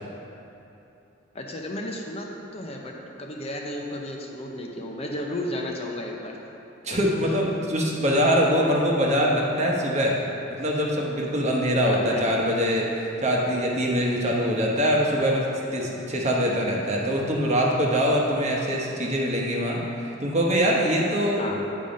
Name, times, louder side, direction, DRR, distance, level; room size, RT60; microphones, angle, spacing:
voice 1, 1.3-6.4 6.9-7.0 11.9-12.3 21.4-21.6, left 1 dB, 30° left, 0 dB, 0.7 m, -33 dB
voice 2, 6.8-10.2 10.6-19.8 20.2-21.4, equal, 35° right, -2 dB, 1.1 m, -23 dB
8.9 x 5.5 x 5.2 m, 2.9 s
head